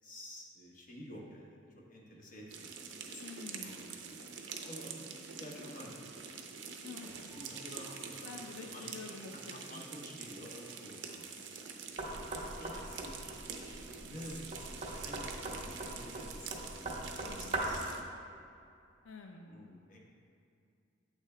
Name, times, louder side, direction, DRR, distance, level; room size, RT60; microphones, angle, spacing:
voice 1, 0.0-2.8 3.1-3.2 3.5-4.2 4.5-6.4 7.0-9.0 9.5-11.3 11.5-11.7 11.9-13.2 14.0-16.6 17.2-17.9 19.5-20.0, equal, 45° left, -2 dB, 1.0 m, -50 dB
sound 1, 2.5-18.0, right 5 dB, 70° right, 0.5 m, -46 dB
voice 2, 3.2-4.0 6.8-7.4 8.2-9.8 17.2-17.6 19.0-19.8, left 4 dB, 85° left, 3 dB, 0.4 m, -49 dB
Whispering, 7.1-9.6 10.3-11.5 12.1-15.4, equal, 25° left, 1.1 m, -60 dB
Knock, 12.0-17.9, right 2 dB, 30° right, 0.8 m, -40 dB
8.1 x 6.9 x 2.2 m, 2.5 s
head